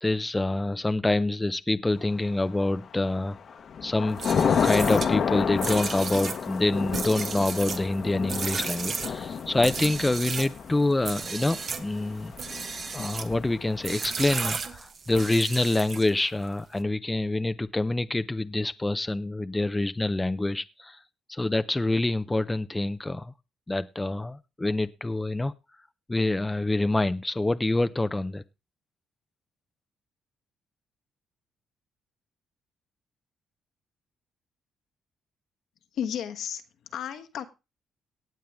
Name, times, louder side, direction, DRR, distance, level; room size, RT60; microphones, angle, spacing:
voice 1, 0.0-3.4 3.8-12.3 12.9-21.0 21.3-23.3 23.7-25.5 26.1-28.4, left 2 dB, 15° left, 0.5 m, -26 dB
Thunder / Rain, 2.4-2.9 3.4-14.5, left 7 dB, 55° left, 1.1 m, -31 dB
sound 1, 4.1-10.6 11.0-11.9 12.3-13.3 13.8-16.2, right 5 dB, 50° right, 1.2 m, -34 dB
voice 2, 35.9-37.4, left 9 dB, 75° left, 1.3 m, -33 dB
18.5 x 7.6 x 3.5 m
cardioid pair, 90°, 0 cm